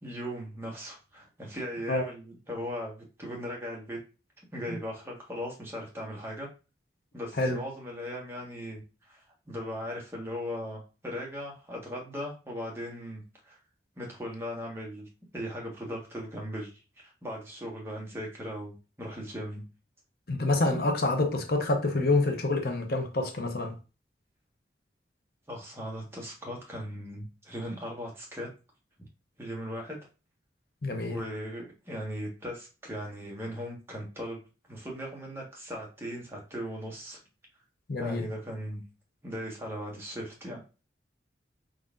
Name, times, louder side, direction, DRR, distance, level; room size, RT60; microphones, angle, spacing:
voice 1, 0.0-4.0 4.5-6.5 7.1-13.6 14.0-19.6 25.5-28.5 29.4-30.0 31.1-34.4 34.7-37.2 38.0-38.8 39.2-40.6, equal, 15° right, 1.3 m, -38 dB
voice 2, 20.3-23.7 30.8-31.2 37.9-38.2, left 2 dB, 55° left, 0.7 m, -27 dB
4.7 x 3.9 x 2.5 m
head